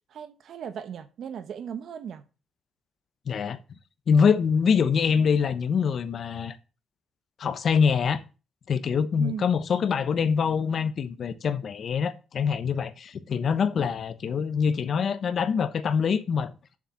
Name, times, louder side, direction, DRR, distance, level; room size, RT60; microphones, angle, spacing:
voice 1, 0.1-2.2 9.2-9.5, right 8 dB, 65° right, 1.2 m, -37 dB
voice 2, 3.3-3.6 4.1-6.6 7.4-8.2 8.7-16.5, left 6 dB, 55° left, 1.1 m, -24 dB
7.3 x 6.7 x 7.5 m
cardioid pair, 90°, 0 cm